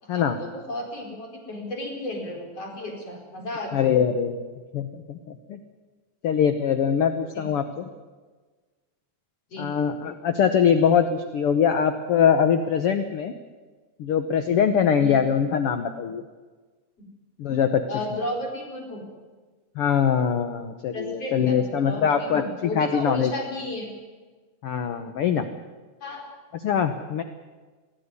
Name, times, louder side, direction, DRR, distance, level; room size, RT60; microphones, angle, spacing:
voice 1, 0.0-3.8 7.3-7.5 9.5-9.7 15.0-15.2 17.9-19.0 20.9-23.9 26.0-26.2, left 1 dB, 50° left, 1 dB, 5.5 m, -33 dB
voice 2, 3.7-5.6 6.2-7.9 9.6-13.3 14.0-16.2 17.4-17.8 19.7-23.3 24.6-25.5 26.5-27.2, left 7 dB, 65° left, 8 dB, 1.5 m, -23 dB
22.5 x 14.5 x 9.7 m, 1.4 s
omnidirectional pair, 3.7 m